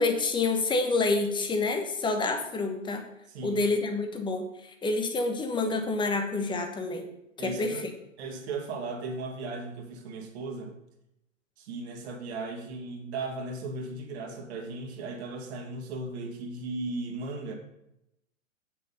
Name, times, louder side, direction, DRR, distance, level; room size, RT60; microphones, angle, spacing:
voice 1, 0.0-3.0 3.4-7.1 7.4-7.9, left 3 dB, 10° left, 5 dB, 1.1 m, -28 dB
voice 2, 3.3-3.6 7.4-7.9 8.2-10.7 11.6-17.5, right 3 dB, 55° right, 1 dB, 2.4 m, -36 dB
7.5 x 6.8 x 5.4 m, 0.85 s
hypercardioid pair, 120°, 39 cm